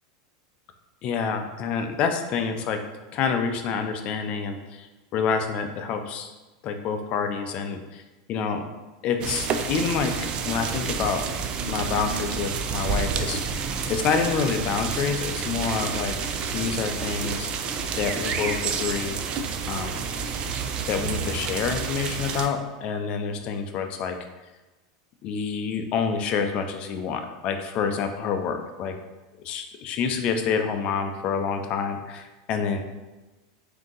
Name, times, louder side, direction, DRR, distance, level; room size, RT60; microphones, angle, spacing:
voice 1, 1.0-2.8 3.1-4.9 5.1-6.3 6.6-8.0 8.3-8.6 9.0-11.2 11.7-13.4 13.9-16.2 16.5-17.5 18.0-19.2 19.7-20.0 20.4-20.5 20.9-24.2 25.2-28.9 29.4-32.8, left 6 dB, 40° left, 6 dB, 0.4 m, -27 dB
sound 1, 9.2-22.5, right 6 dB, 35° right, 0.3 m, -29 dB
3.6 x 2.7 x 3.8 m, 1.1 s
supercardioid pair, 145°, 3 cm